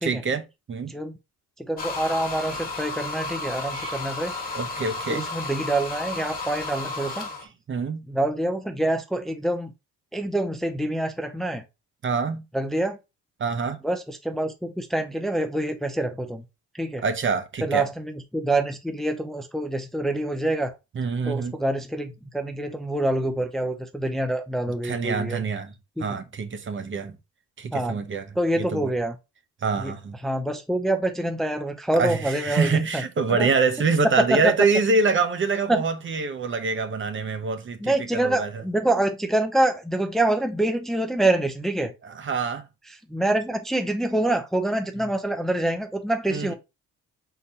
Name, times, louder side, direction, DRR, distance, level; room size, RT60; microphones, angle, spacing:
voice 1, 0.0-0.9 3.7-4.0 4.5-5.3 7.7-8.0 12.0-12.4 13.4-13.8 17.0-17.9 20.9-21.6 24.8-25.7 26.0-27.2 27.6-28.9 29.6-30.2 31.9-38.6 42.0-42.7 46.3-46.5, right 4 dB, 40° right, 0.8 m, -25 dB
voice 2, 1.7-4.3 5.1-7.3 8.1-9.7 10.1-11.6 12.5-13.0 13.8-16.4 16.7-17.0 17.6-20.8 21.3-25.4 26.0-26.1 27.7-28.0 28.4-29.1 29.8-29.9 30.2-33.0 33.3-33.5 34.3-34.5 35.7-35.8 37.8-41.9 43.1-46.5, right 1 dB, ahead, 0.5 m, -26 dB
sound 1, 1.8-7.5, left 3 dB, 30° left, 1.4 m, -33 dB
4.1 x 3.9 x 2.7 m
cardioid pair, 90°, 30 cm